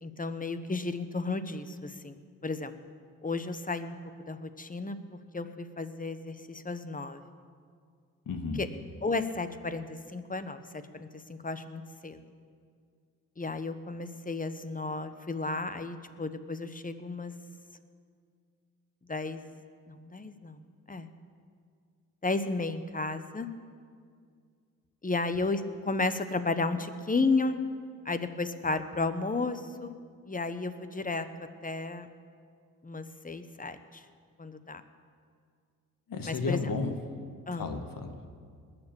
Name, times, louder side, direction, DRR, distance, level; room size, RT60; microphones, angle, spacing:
voice 1, 0.0-2.2 2.4-2.7 3.2-4.0 4.3-5.0 5.3-7.2 8.6-8.7 9.0-9.8 10.1-10.6 10.9-12.2 13.4-17.3 19.1-19.5 19.9-21.1 22.2-23.5 25.0-27.6 28.0-29.9 30.3-31.3 31.6-32.1 32.8-34.0 34.4-34.8 36.2-36.7 37.5-37.7, left 3 dB, 20° left, 11 dB, 1.2 m, -33 dB
voice 2, 8.3-8.6 36.1-36.9 37.5-38.3, left 4 dB, 55° left, 6 dB, 2.0 m, -33 dB
20.0 x 7.1 x 7.2 m, 2.1 s
supercardioid pair, 50°, 40 cm